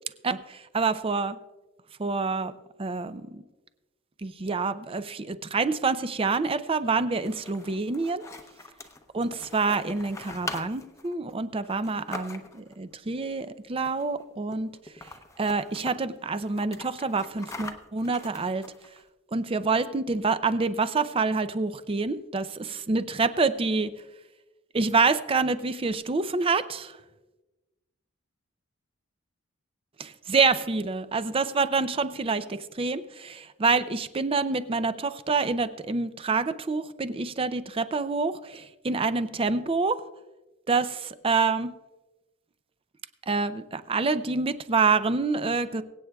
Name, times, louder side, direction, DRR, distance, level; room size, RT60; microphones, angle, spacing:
voice 1, 0.2-1.4 2.0-2.5 2.8-3.4 4.2-8.2 9.1-14.7 15.4-18.6 19.3-23.9 24.7-27.0 30.0-40.0 40.7-41.7 43.3-45.8, right 4 dB, 25° right, 12 dB, 0.5 m, -27 dB
sound 1, 7.1-12.7 13.8-14.2 14.5-14.6 14.9-15.9 16.4-19.0, left 2 dB, 15° left, 0.7 m, -42 dB
24.0 x 8.7 x 2.3 m, 1.1 s
head